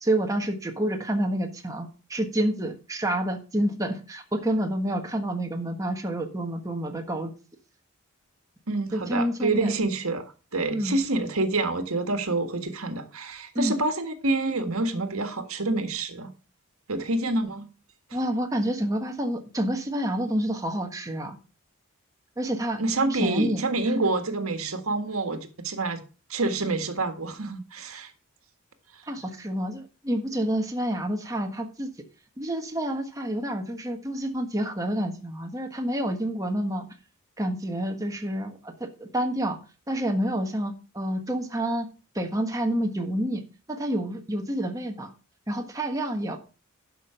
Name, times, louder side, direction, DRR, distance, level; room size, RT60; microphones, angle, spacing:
voice 1, 0.0-7.3 8.9-9.7 10.7-11.0 13.5-13.8 18.1-21.4 22.4-22.8 23.1-23.6 29.1-31.9 32.4-36.8 37.4-38.7 39.0-39.6 39.9-41.9 42.1-43.4 43.7-45.1 45.5-46.4, right 1 dB, 15° right, 1.4 m, -28 dB
voice 2, 8.7-10.2 10.5-16.3 16.9-17.7 22.8-26.0 26.3-28.1, right 2 dB, 90° right, 1.7 m, -27 dB
11.5 x 6.0 x 5.7 m
head